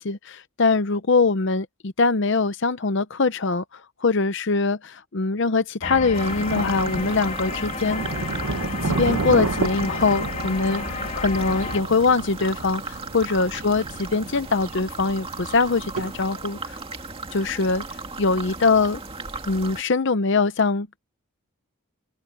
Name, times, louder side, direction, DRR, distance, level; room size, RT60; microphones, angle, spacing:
voice 1, 0.0-8.0 8.8-10.8 11.2-16.8 17.3-17.8 18.2-19.0 19.5-21.0, left 4 dB, 55° left, 0.7 m, -22 dB
sound 1, 5.8-11.8, left 4 dB, 35° left, 2.1 m, -32 dB
sound 2, 6.1-19.8, right 3 dB, 25° right, 2.3 m, -36 dB
Thunder, 6.3-16.3, right 3 dB, 85° right, 1.0 m, -32 dB
head